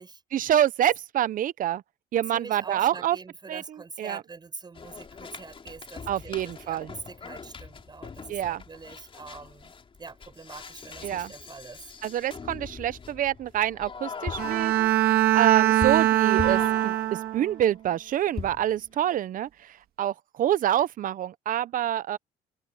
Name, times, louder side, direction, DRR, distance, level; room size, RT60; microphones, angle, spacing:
voice 1, 0.3-1.8 2.1-3.2 3.5-3.6 4.0-4.2 6.1-6.9 8.3-8.6 11.0-11.3 12.0-22.2, right 11 dB, 55° right, 0.8 m, -27 dB
voice 2, 2.3-9.7 10.0-11.9, right 4 dB, 25° right, 6.3 m, -44 dB
Musique concrete piece, 4.7-17.6 18.4-18.8, left 5 dB, 30° left, 4.2 m, -41 dB
Bowed string instrument, 14.4-17.6, right 14 dB, 70° right, 1.8 m, -22 dB
open air
cardioid pair, 110°, 17 cm